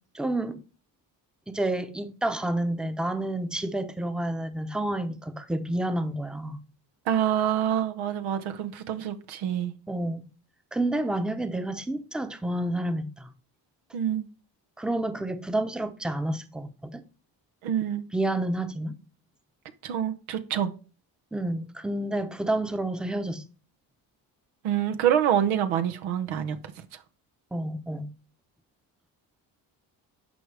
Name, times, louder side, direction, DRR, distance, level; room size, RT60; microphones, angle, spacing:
voice 1, 0.1-0.6 1.5-6.6 9.9-10.2 10.7-13.3 14.8-17.0 18.1-18.9 21.3-23.4 27.5-28.1, right 1 dB, ahead, 0.8 m, -29 dB
voice 2, 7.1-9.7 13.9-14.3 17.6-18.0 19.8-20.7 24.6-26.6, right 10 dB, 85° right, 0.9 m, -26 dB
11.0 x 4.9 x 3.4 m
supercardioid pair, 55°, 48 cm